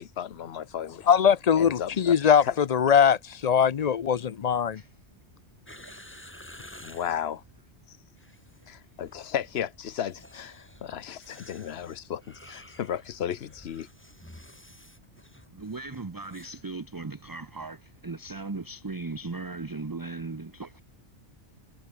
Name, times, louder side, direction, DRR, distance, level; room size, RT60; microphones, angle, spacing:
voice 1, 0.0-1.0 1.6-2.1 2.4-2.5 6.8-7.4 7.9-8.0 8.7-13.9, left 9 dB, 70° left, 1.0 m, -34 dB
voice 2, 1.1-2.4 2.7-4.8, left 7 dB, 45° left, 0.5 m, -21 dB
sound 1, 5.7-7.3 8.1-8.7 9.0-9.4 10.0-16.6 16.9-17.0, left 1 dB, 10° left, 2.2 m, -51 dB
voice 3, 15.5-20.8, right 3 dB, 20° right, 0.7 m, -38 dB
omnidirectional pair, 1.1 m